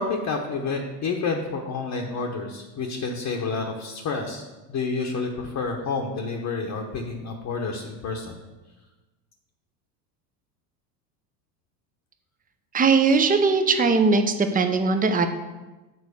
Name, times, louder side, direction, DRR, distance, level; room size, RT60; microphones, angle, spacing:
voice 1, 0.0-4.4 4.7-8.4, left 4 dB, 35° left, 1 dB, 1.0 m, -29 dB
voice 2, 12.7-15.3, right 4 dB, 20° right, 8 dB, 0.7 m, -20 dB
7.1 x 4.0 x 6.5 m, 1.2 s
hypercardioid pair, 95°, 48 cm